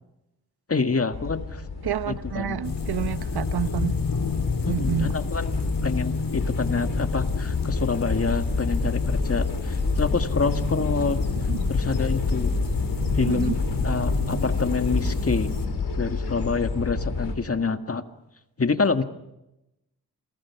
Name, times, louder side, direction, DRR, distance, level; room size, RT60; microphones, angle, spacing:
voice 1, 0.7-1.6 2.1-2.6 4.6-11.2 11.7-12.5 13.1-13.6 13.8-15.5 16.0-18.0 18.6-19.0, left 4 dB, 35° left, 1.9 m, -27 dB
sound 1, 1.1-17.3, left 4 dB, 85° left, 4.8 m, -30 dB
voice 2, 1.8-4.0 4.7-5.1 11.5-11.7 13.2-13.5, right 10 dB, 80° right, 1.1 m, -29 dB
sound 2, 2.6-15.7, left 4 dB, 60° left, 4.2 m, -28 dB
29.0 x 24.0 x 6.0 m
cardioid pair, 70°, 38 cm